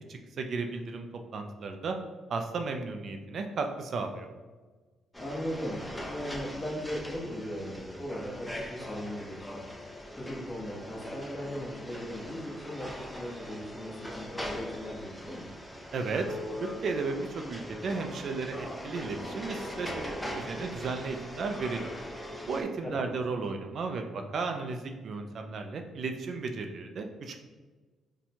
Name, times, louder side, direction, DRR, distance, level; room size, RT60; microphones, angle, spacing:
voice 1, 0.1-1.1 1.3-2.0 2.3-4.3 15.9-16.3 16.6-21.9 22.5-27.4, right 4 dB, 60° right, 5 dB, 0.3 m, -34 dB
sound 1, 5.1-22.6, equal, 5° left, 0.5 m, -41 dB
voice 2, 5.2-15.5 22.8-23.1, equal, 20° left, -3 dB, 1.0 m, -38 dB
2.8 x 2.2 x 4.1 m, 1.3 s
cardioid pair, 90°, 0 cm